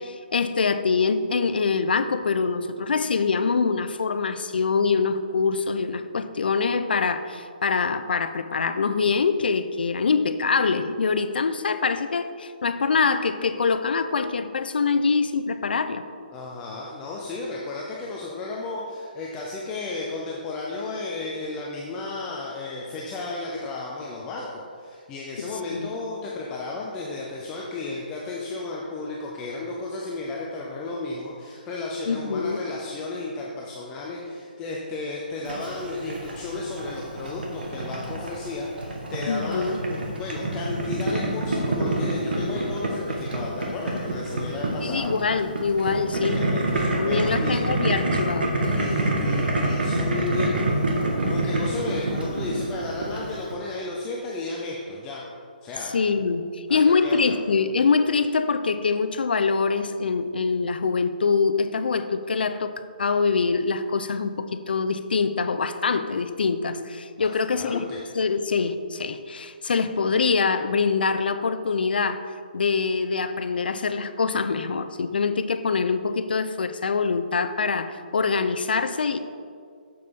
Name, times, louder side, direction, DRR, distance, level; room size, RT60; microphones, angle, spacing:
voice 1, 0.0-16.0 25.7-25.9 32.1-32.6 39.3-39.8 44.8-46.6 46.9-48.5 55.9-62.7 63.0-67.9 68.1-72.3 72.5-79.2, left 5 dB, 75° left, 11 dB, 0.5 m, -24 dB
voice 2, 16.3-45.1 46.7-47.6 48.8-55.2 55.6-55.9 56.7-57.3 67.2-68.1, left 3 dB, 10° left, -3 dB, 0.3 m, -33 dB
Boiling, 35.4-53.5, right 1 dB, 75° right, 1.4 m, -27 dB
6.9 x 6.6 x 3.6 m, 2.2 s
hypercardioid pair, 175°, 5 cm